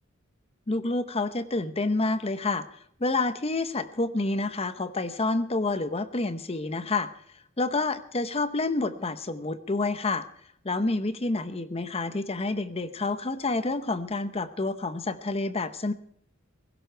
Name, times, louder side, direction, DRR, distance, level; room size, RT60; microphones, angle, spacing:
voice 1, 0.7-2.6 3.0-7.1 7.6-10.2 10.6-15.9, left 3 dB, 30° left, 12 dB, 0.8 m, -28 dB
16.5 x 16.5 x 4.6 m, 0.66 s
head